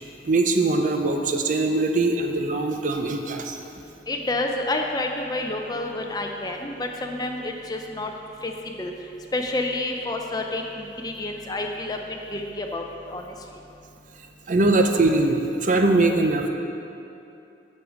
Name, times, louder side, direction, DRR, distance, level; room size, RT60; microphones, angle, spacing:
voice 1, 0.2-3.6 14.5-16.5, right 2 dB, 45° right, 4 dB, 0.5 m, -21 dB
voice 2, 4.1-8.1 8.4-8.5 8.8-8.9 9.3-12.0 12.3-13.3, left 2 dB, 20° left, 2 dB, 0.5 m, -29 dB
8.2 x 6.4 x 4.9 m, 2.7 s
head